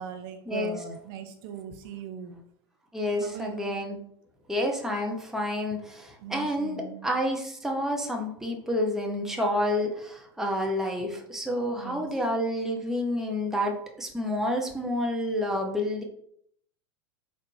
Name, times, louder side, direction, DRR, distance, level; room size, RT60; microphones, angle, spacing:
voice 1, 0.0-2.4 3.2-3.9 6.2-7.1 11.7-12.1, right 7 dB, 50° right, 5 dB, 0.5 m, -40 dB
voice 2, 2.9-4.0 4.5-16.0, left 1 dB, 5° right, 1 dB, 0.6 m, -29 dB
4.0 x 2.1 x 3.1 m, 0.69 s
figure-of-eight pair, 90°, 15 cm